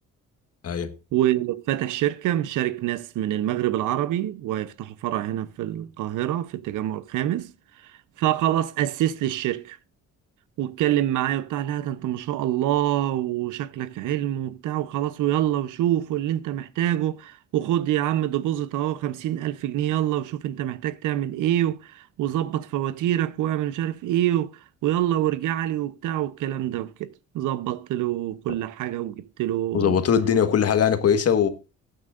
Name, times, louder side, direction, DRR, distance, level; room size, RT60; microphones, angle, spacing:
voice 1, 1.1-7.5 8.2-9.8 10.6-27.1 27.3-30.0, right 12 dB, 85° right, 0.8 m, -26 dB
voice 2, 29.7-31.5, left 8 dB, 55° left, 1.6 m, -20 dB
15.5 x 9.1 x 2.5 m
cardioid pair, 90°, 30 cm